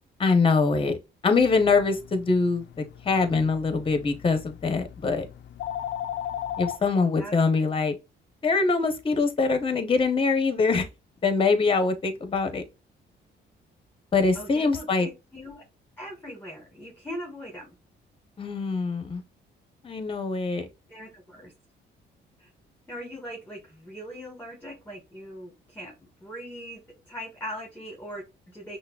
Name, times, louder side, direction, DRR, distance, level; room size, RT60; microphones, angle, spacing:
voice 1, 0.2-1.0 1.2-5.2 6.6-7.9 8.4-10.9 11.2-12.6 14.1-15.1 18.4-19.2 19.8-20.6, left 4 dB, 25° left, 0.8 m, -23 dB
sound 1, 1.4-6.8, left 11 dB, 65° left, 0.4 m, -37 dB
voice 2, 6.8-7.3 14.3-15.6 16.0-17.7 20.9-21.5 22.4-22.5 22.9-28.8, equal, 10° left, 1.3 m, -40 dB
5.7 x 2.0 x 2.3 m
cardioid pair, 90°, 20 cm